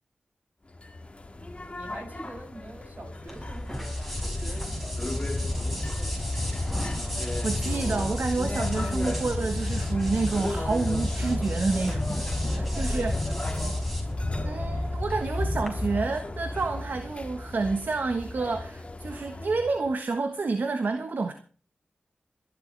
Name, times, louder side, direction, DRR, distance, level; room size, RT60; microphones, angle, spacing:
sound 1, 0.8-19.9, left 1 dB, 35° left, 2.1 m, -32 dB
voice 1, 1.3-6.5 12.4-13.9 14.3-14.4, right 2 dB, 50° right, 7.7 m, -45 dB
sound 2, 3.3-15.7, equal, 5° right, 5.2 m, -37 dB
voice 2, 7.4-12.2 12.5-13.1 14.4-21.3, right 3 dB, 70° right, 1.3 m, -29 dB
27.0 x 11.5 x 3.4 m
cardioid pair, 55°, 3 cm